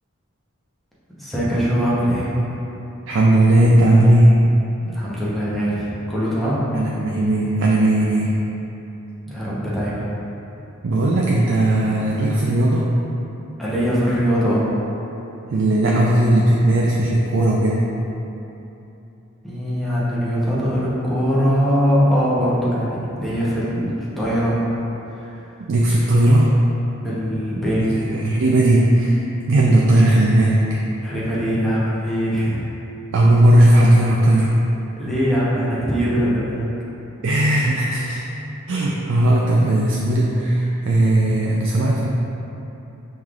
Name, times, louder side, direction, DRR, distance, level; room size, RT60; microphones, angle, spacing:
voice 1, 1.2-2.3 4.8-6.7 9.3-10.0 13.6-14.7 19.4-24.6 25.2-25.3 27.0-28.2 31.0-32.7 35.0-36.6, equal, ahead, -9 dB, 0.8 m, -21 dB
voice 2, 3.1-4.4 6.7-8.4 10.8-12.9 15.5-17.9 23.8-23.9 25.7-26.5 27.9-30.6 33.1-34.5 37.2-38.2 38.7-42.1, right 1 dB, 60° right, -4 dB, 0.4 m, -16 dB
5.5 x 3.3 x 2.4 m, 3.0 s
head